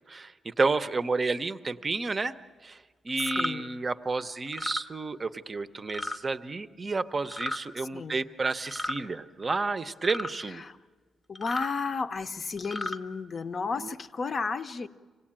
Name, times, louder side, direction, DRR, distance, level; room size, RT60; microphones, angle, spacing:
voice 1, 0.1-2.3 2.6-10.6 13.8-13.9, right 3 dB, 25° right, 12 dB, 0.7 m, -31 dB
voice 2, 3.2-3.7 7.8-8.2 10.4-10.8 11.3-14.9, left 4 dB, 40° left, 10 dB, 0.7 m, -33 dB
sound 1, 3.2-3.5 4.5-4.8 5.9-6.2 7.2-7.6 8.7-9.0 10.0-10.3 11.4-11.7 12.6-13.0, left 1 dB, 5° left, 0.8 m, -34 dB
26.0 x 17.5 x 8.8 m, 1.4 s
wide cardioid pair, 145°, 0 cm